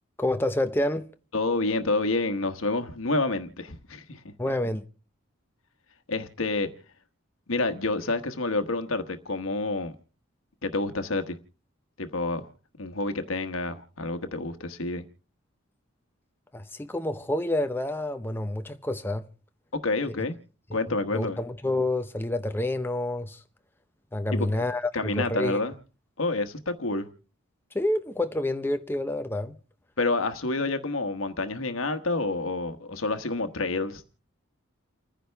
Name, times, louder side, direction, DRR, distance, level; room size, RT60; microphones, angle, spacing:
voice 1, 0.2-1.1 4.4-4.8 16.5-19.3 21.1-23.4 24.1-25.6 27.7-29.5, left 1 dB, 10° left, 0.7 m, -28 dB
voice 2, 1.3-4.2 6.1-6.7 7.5-9.9 10.6-11.4 12.0-12.5 12.8-15.0 19.7-20.4 20.7-21.4 24.3-24.6 24.9-25.8 26.2-27.1 30.0-34.2, left 2 dB, 85° left, 1.2 m, -28 dB
29.5 x 10.0 x 3.4 m
head